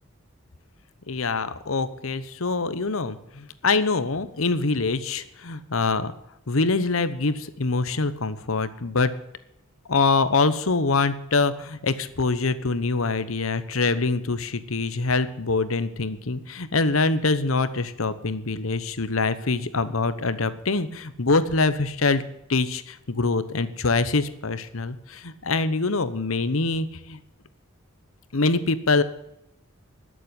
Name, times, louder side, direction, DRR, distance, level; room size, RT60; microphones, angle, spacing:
voice 1, 1.1-6.1 6.5-9.1 9.9-22.2 22.5-27.2 28.3-29.0, left 3 dB, 70° left, 14 dB, 1.0 m, -24 dB
13.0 x 7.7 x 9.8 m, 0.81 s
head